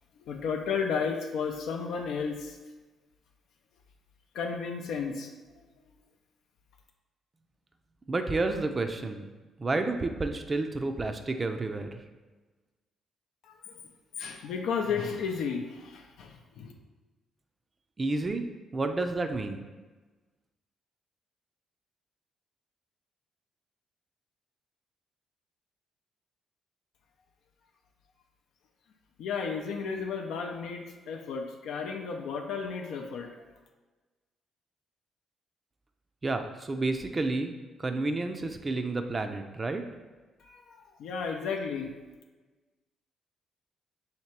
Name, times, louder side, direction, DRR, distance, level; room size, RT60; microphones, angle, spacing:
voice 1, 0.2-2.6 4.3-5.3 13.4-13.7 14.2-16.7 29.2-33.3 40.4-41.9, left 5 dB, 80° left, 2 dB, 0.4 m, -33 dB
voice 2, 8.1-9.3 9.6-12.0 18.0-18.5 18.7-19.6 36.2-37.5 37.8-39.8, right 2 dB, 30° right, 7 dB, 0.4 m, -30 dB
3.2 x 2.8 x 4.5 m, 1.3 s
cardioid pair, 90°, 0 cm